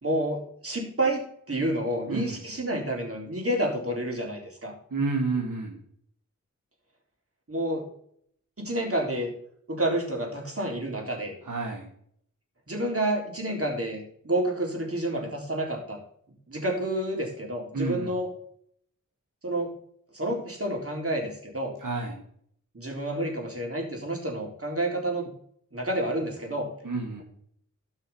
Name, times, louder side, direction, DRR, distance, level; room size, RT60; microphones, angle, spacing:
voice 1, 0.0-4.7 7.5-7.9 8.6-9.3 9.7-11.3 12.7-16.0 16.5-18.3 19.4-19.7 20.1-21.7 22.7-25.3 25.7-26.7, right 1 dB, 45° right, 0 dB, 3.8 m, -29 dB
voice 2, 2.1-2.4 4.9-5.8 11.4-11.9 17.7-18.1 21.8-22.2 26.8-27.2, right 3 dB, 80° right, -1 dB, 2.0 m, -30 dB
13.5 x 5.6 x 5.6 m, 0.65 s
cardioid pair, 40°, 32 cm